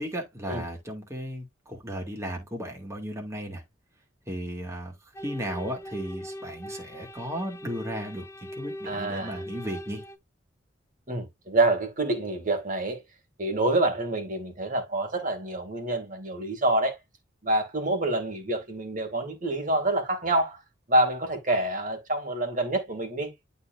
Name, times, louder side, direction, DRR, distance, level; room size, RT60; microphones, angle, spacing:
voice 1, 0.0-3.6 4.3-8.2 8.5-10.0, equal, 15° right, 2.2 m, -35 dB
sound 1, 5.1-10.2, left 1 dB, 15° left, 0.6 m, -40 dB
voice 2, 8.9-9.4 11.1-13.0 13.4-17.0 17.4-20.6 20.9-23.3, right 2 dB, 45° right, 2.4 m, -27 dB
11.5 x 4.0 x 2.6 m
head